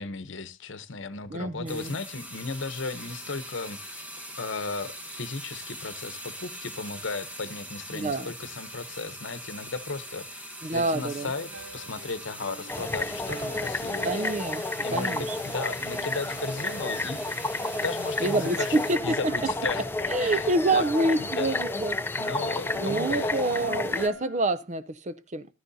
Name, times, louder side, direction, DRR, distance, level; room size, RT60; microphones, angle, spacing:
voice 1, 0.0-4.1 4.4-14.3 14.8-17.5 17.8-19.9 20.2-20.8 21.2-21.6 22.2-23.3, left 3 dB, 65° left, 0.9 m, -35 dB
voice 2, 1.3-2.0 7.9-8.3 10.6-11.3 14.0-14.6 14.9-15.4 18.2-19.3 20.1-22.0 22.8-25.5, right 2 dB, 35° right, 0.6 m, -27 dB
sound 1, 1.7-19.0, equal, 10° right, 1.3 m, -42 dB
sound 2, 10.8-24.4, right 3 dB, 75° right, 2.0 m, -47 dB
sound 3, 12.7-24.1, left 2 dB, 10° left, 0.5 m, -31 dB
14.0 x 13.0 x 2.7 m
head